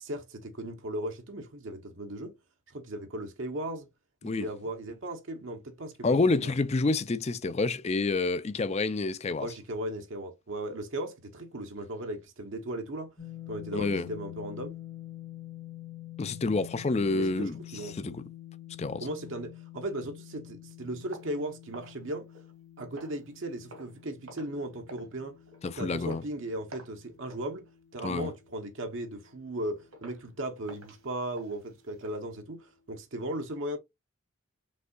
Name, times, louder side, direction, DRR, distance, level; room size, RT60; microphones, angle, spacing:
voice 1, 0.0-2.4 2.7-3.9 4.2-6.5 9.4-13.1 13.5-14.7 17.1-18.0 19.0-22.3 22.8-25.4 25.8-27.7 27.9-33.8, right 1 dB, 65° right, 0.8 m, -37 dB
voice 2, 6.0-9.5 13.7-14.1 16.2-17.6 17.8-18.2 18.8-19.1 25.6-26.2 28.0-28.3, left 3 dB, 30° left, 0.4 m, -28 dB
sound 1, 13.2-29.1, left 14 dB, 50° left, 1.6 m, -47 dB
sound 2, 21.1-22.6 22.9-23.3 23.7-24.0 24.3-24.6 24.9-25.1 25.5-25.7 26.1-26.3 26.7-27.0 27.3-27.5 27.9-28.2 28.6-28.7 29.2-29.3 29.9-30.2 30.6-32.2, right 1 dB, 85° right, 1.8 m, -50 dB
5.4 x 3.5 x 2.3 m
head